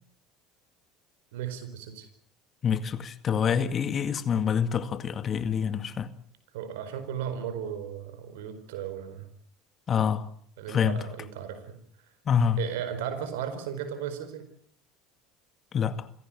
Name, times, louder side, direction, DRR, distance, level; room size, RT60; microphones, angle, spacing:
voice 1, 1.3-2.1 6.5-9.3 10.6-11.8 12.6-14.4, right 8 dB, 80° right, 4.5 m, -35 dB
voice 2, 2.6-6.1 9.9-10.3 10.7-11.0 12.3-12.6 15.7-16.1, left 7 dB, 40° left, 2.1 m, -26 dB
26.0 x 16.5 x 9.1 m
hypercardioid pair, 80°, 0 cm